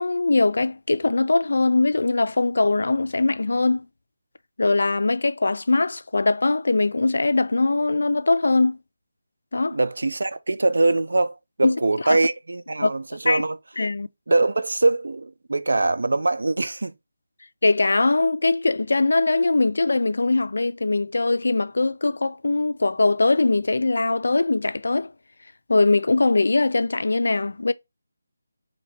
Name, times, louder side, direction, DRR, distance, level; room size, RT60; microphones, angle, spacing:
voice 1, 0.0-3.9 4.6-8.8 9.5-9.8 11.6-11.8 12.0-12.2 12.8-12.9 13.3-13.4 13.8-14.1 17.6-25.1 25.7-27.7, left 3 dB, 75° left, 0.3 m, -21 dB
voice 2, 9.7-13.6 14.3-16.9, right 2 dB, 75° right, 0.5 m, -23 dB
3.0 x 2.8 x 4.3 m
figure-of-eight pair, 170°, 0 cm